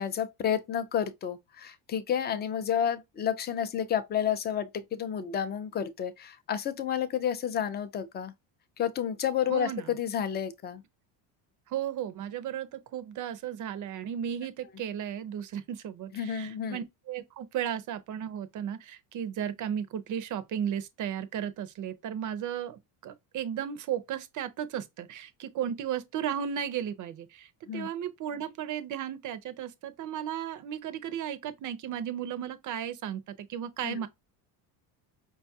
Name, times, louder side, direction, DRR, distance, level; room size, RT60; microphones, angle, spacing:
voice 1, 0.0-8.3 8.8-10.8 16.1-16.8 27.7-27.9 33.8-34.0, left 9 dB, 25° left, 0.4 m, -30 dB
voice 2, 9.5-9.9 11.7-34.1, right 9 dB, 40° right, 0.5 m, -35 dB
5.1 x 2.3 x 2.6 m
cardioid pair, 125°, 47 cm